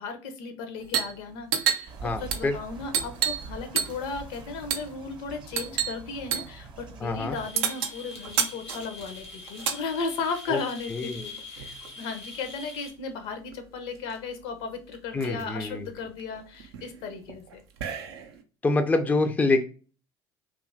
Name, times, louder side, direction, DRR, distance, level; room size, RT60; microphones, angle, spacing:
voice 1, 0.0-17.6, left 4 dB, 65° left, 6 dB, 0.6 m, -35 dB
sound 1, 0.8-1.2 1.4-3.5 3.8-4.1 4.7-4.9 5.6-6.0 6.3-6.5 7.6-9.8 10.9-12.0 13.2-13.3 13.5-14.1 14.6-14.7 14.9-15.4 16.0-18.4, right 8 dB, 70° right, 0.4 m, -30 dB
sound 2, 1.9-7.5, right 4 dB, 35° right, 0.7 m, -44 dB
voice 2, 2.0-2.6 7.0-7.4 10.5-10.6 10.9-11.3 15.1-15.9 18.6-19.6, left 2 dB, 10° left, 8 dB, 0.4 m, -26 dB
sound 3, 7.3-12.9, left 3 dB, 85° left, 1.0 m, -43 dB
2.7 x 2.4 x 2.5 m, 0.37 s
figure-of-eight pair, 65°, 13 cm